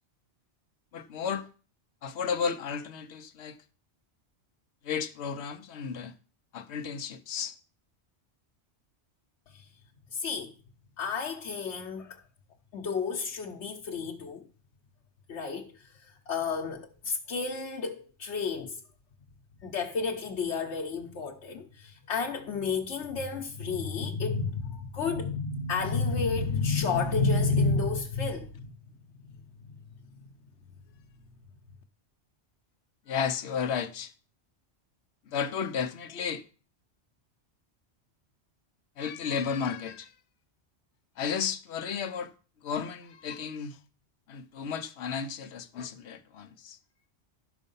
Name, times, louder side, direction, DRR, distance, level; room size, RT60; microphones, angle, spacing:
voice 1, 0.9-1.4 2.0-3.6 4.8-6.1 6.5-7.5 33.1-34.1 35.3-36.4 39.0-40.1 41.2-42.3 42.6-43.8 44.3-46.8, left 6 dB, 70° left, 1.0 m, -33 dB
voice 2, 10.1-10.5 11.0-12.2 12.7-14.5 15.3-18.8 19.6-28.7 29.6-29.8, left 4 dB, 90° left, 1.2 m, -31 dB
12.0 x 5.3 x 5.4 m
omnidirectional pair, 1.1 m